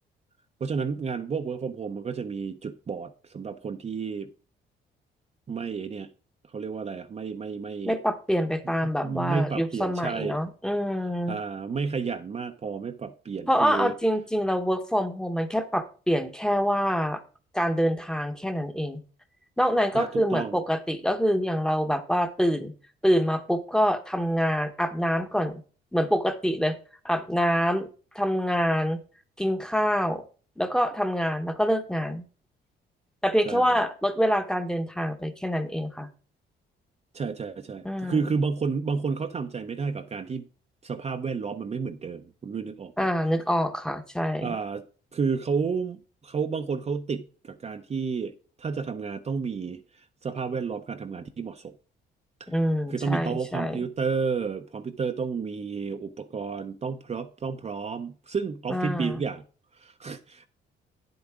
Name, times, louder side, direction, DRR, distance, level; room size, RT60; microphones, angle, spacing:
voice 1, 0.6-4.3 5.5-6.1 6.5-8.0 8.6-8.7 9.0-10.4 11.3-13.9 19.9-20.6 33.4-33.8 37.1-40.5 40.8-43.1 44.4-44.8 45.1-48.3 48.6-51.7 52.4-52.5 52.9-59.4 59.7-60.5, right 5 dB, 35° right, 0.6 m, -31 dB
voice 2, 7.8-11.4 13.5-17.2 17.5-19.0 19.6-22.7 23.0-25.6 25.9-26.8 27.0-27.9 28.1-29.0 29.4-30.2 30.6-32.2 33.2-36.1 37.8-38.2 43.0-44.6 52.5-53.8 58.7-59.2, equal, 5° left, 0.9 m, -26 dB
9.4 x 7.9 x 3.6 m
cardioid pair, 90°, 20 cm